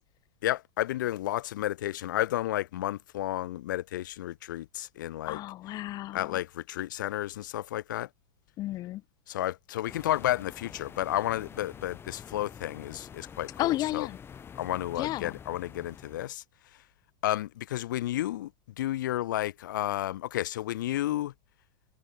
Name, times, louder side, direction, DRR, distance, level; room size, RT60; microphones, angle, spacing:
voice 1, 0.4-5.4 6.1-8.1 9.3-14.1 14.6-16.4 17.2-18.5 18.8-21.3, left 14 dB, 75° left, 1.9 m, -32 dB
voice 2, 5.2-6.4 8.6-9.0 13.6-14.2 15.0-15.3, left 15 dB, 40° left, 1.5 m, -32 dB
sound 1, 9.9-16.3, left 7 dB, 20° left, 5.9 m, -47 dB
supercardioid pair, 125°, 10 cm